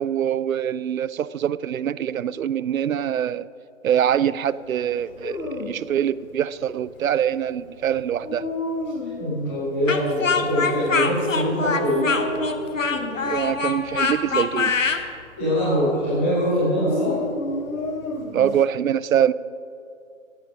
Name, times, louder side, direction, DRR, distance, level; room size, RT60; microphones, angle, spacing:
voice 1, 0.0-3.5 3.8-8.5 13.2-14.7 18.3-19.3, right 9 dB, 80° right, 18 dB, 0.5 m, -24 dB
Dog, 4.9-18.6, left 2 dB, 85° left, 1.3 m, -33 dB
voice 2, 9.2-12.0 15.4-17.2, equal, 10° left, -11 dB, 3.0 m, -23 dB
Speech, 9.9-15.0, left 4 dB, 70° left, 1.1 m, -24 dB
17.0 x 7.6 x 5.1 m, 2.5 s
hypercardioid pair, 180°, 40 cm